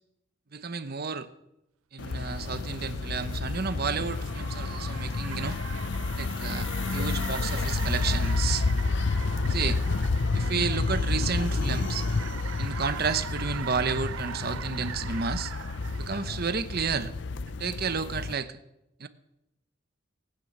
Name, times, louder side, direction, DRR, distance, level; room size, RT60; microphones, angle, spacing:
voice 1, 0.5-1.3 1.9-5.6 6.2-8.7 9.5-9.8 10.3-12.1 12.6-15.5 16.0-17.1 17.6-18.6 19.0-19.1, right 5 dB, 50° right, 12 dB, 0.8 m, -31 dB
sound 1, 2.0-18.3, left 3 dB, 60° left, 0.5 m, -30 dB
Car, 2.4-16.3, right 9 dB, 80° right, 0.4 m, -42 dB
16.5 x 9.2 x 8.0 m, 0.88 s
head